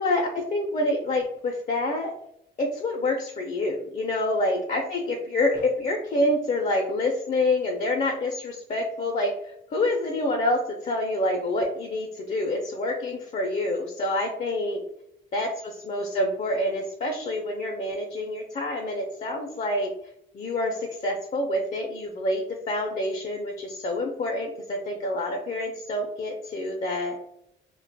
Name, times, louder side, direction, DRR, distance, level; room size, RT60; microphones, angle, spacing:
voice 1, 0.0-2.1 2.6-9.3 9.7-14.8 15.3-15.5 15.8-19.9 20.3-27.2, left 1 dB, 35° left, 1 dB, 0.4 m, -27 dB
2.4 x 2.1 x 2.6 m, 0.77 s
cardioid pair, 90°, 20 cm